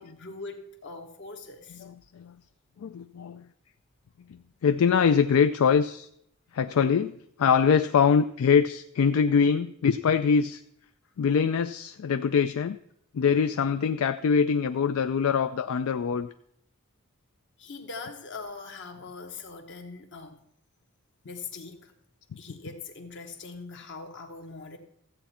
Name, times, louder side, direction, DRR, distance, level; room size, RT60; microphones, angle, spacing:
voice 1, 0.0-1.8 17.6-20.4 21.2-21.9 22.4-24.8, left 4 dB, 55° left, 5 dB, 1.3 m, -41 dB
voice 2, 1.7-2.4 2.8-3.5 4.3-6.1 6.5-10.6 11.2-12.8 13.1-16.3 22.6-22.7, left 6 dB, 75° left, 11 dB, 0.4 m, -24 dB
14.0 x 8.2 x 4.3 m, 0.70 s
head